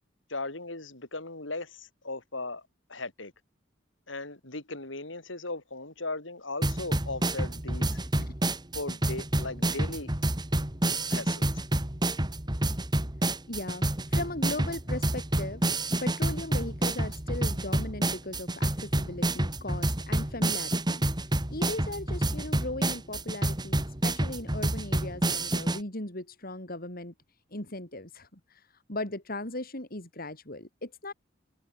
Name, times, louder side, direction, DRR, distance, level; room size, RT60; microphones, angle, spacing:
voice 1, 0.3-2.6 2.9-3.3 4.1-8.0 8.7-10.1 11.1-11.5, left 2 dB, 90° left, 6.3 m, -37 dB
sound 1, 6.6-25.8, right 1 dB, 25° right, 2.1 m, -28 dB
voice 2, 13.5-15.6 16.0-21.0 21.5-27.1 27.5-31.1, left 2 dB, 50° left, 6.7 m, -38 dB
head